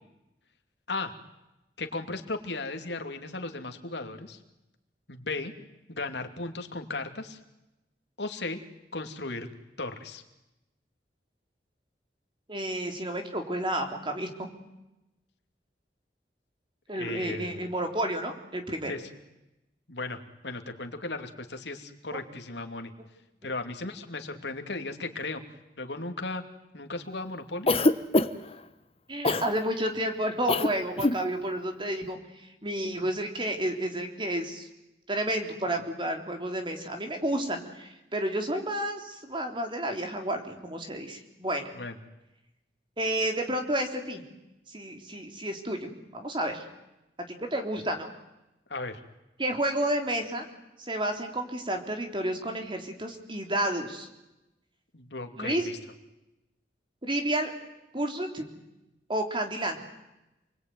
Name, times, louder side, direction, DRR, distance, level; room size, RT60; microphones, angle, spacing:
voice 1, 1.8-4.4 5.1-5.5 5.9-7.4 8.2-8.6 8.9-9.5 9.8-10.2 16.9-17.6 18.9-19.0 19.9-22.9 23.4-25.4 25.8-26.4 26.7-27.7 41.7-41.9 48.7-49.0 54.9-55.8, left 3 dB, 80° left, 6 dB, 2.8 m, -36 dB
voice 2, 12.5-14.5 16.9-18.9 29.1-34.7 35.1-41.7 43.0-44.2 44.7-46.7 47.3-48.1 49.4-50.4 50.8-54.1 55.4-55.7 57.0-57.5 57.9-58.5 59.1-59.8, right 1 dB, 30° right, 4 dB, 3.5 m, -31 dB
Cough, 27.7-28.5 29.2-29.5 30.5-30.7 31.0-31.2, left 2 dB, 35° left, 1.2 m, -23 dB
29.0 x 21.0 x 9.4 m, 0.94 s
head